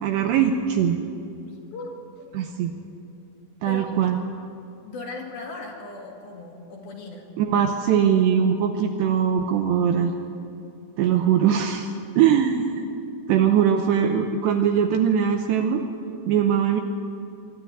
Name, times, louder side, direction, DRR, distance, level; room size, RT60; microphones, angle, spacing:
voice 1, 0.0-1.0 2.3-2.8 3.6-4.2 7.4-10.1 11.0-11.9 12.2-12.9 13.3-15.8 16.3-16.8, right 8 dB, 80° right, 5 dB, 2.6 m, -21 dB
voice 2, 1.5-2.0 3.7-3.9 4.8-7.3 12.2-12.4 16.4-16.6, left 3 dB, 60° left, 1 dB, 3.1 m, -38 dB
23.0 x 12.0 x 9.3 m, 2.6 s
omnidirectional pair, 5.7 m